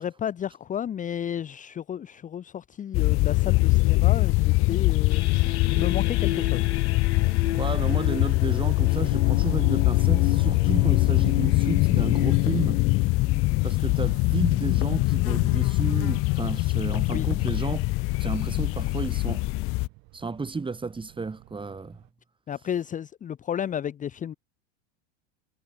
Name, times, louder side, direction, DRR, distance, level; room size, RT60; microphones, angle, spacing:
voice 1, 0.0-6.7 17.1-17.3 22.5-24.3, left 9 dB, 25° left, 0.9 m, -32 dB
sound 1, 2.9-19.9, left 23 dB, 40° left, 0.6 m, -23 dB
sound 2, 5.1-14.5, left 11 dB, 85° left, 1.7 m, -32 dB
voice 2, 7.5-12.8 13.6-17.9 18.2-19.5 20.1-22.0, right 4 dB, 15° right, 5.3 m, -32 dB
Fixed-wing aircraft airplane, 11.8-22.1, right 27 dB, 55° right, 6.0 m, -53 dB
hypercardioid pair, 95°, 33 cm